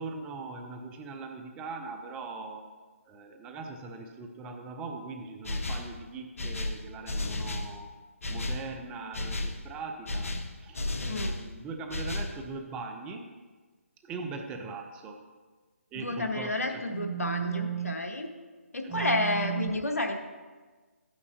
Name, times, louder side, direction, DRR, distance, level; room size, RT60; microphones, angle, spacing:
voice 1, 0.0-2.7 3.1-7.9 8.3-10.3 10.6-13.3 14.0-15.2 15.9-18.0 18.8-19.8, right 6 dB, 10° right, 4 dB, 0.5 m, -39 dB
sound 1, 5.4-5.9 6.4-7.7 8.2-8.7 9.1-9.6 10.1-11.4 11.9-12.4, left 2 dB, 65° left, 0.8 m, -33 dB
voice 2, 15.9-18.3 18.7-20.2, left 2 dB, 85° left, 4 dB, 1.1 m, -30 dB
11.0 x 8.7 x 2.7 m, 1.4 s
figure-of-eight pair, 150°, 8 cm